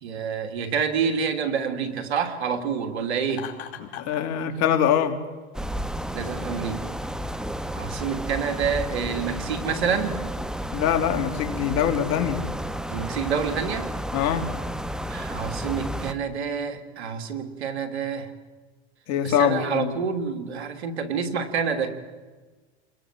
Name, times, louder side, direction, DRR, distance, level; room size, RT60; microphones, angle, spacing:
voice 1, 0.0-3.5 6.1-6.8 7.7-10.2 12.9-13.9 15.1-18.3 19.2-21.9, right 6 dB, 90° right, 8 dB, 3.2 m, -28 dB
Laughter, 3.3-4.2, left 9 dB, 75° left, 4.7 m, -38 dB
voice 2, 3.8-5.2 10.7-12.4 14.1-14.5 19.1-19.9, left 9 dB, 55° left, 8 dB, 3.5 m, -23 dB
sound 1, 5.5-16.1, equal, ahead, 1.6 m, -32 dB
29.5 x 21.5 x 7.7 m, 1.3 s
hypercardioid pair, 100°, 32 cm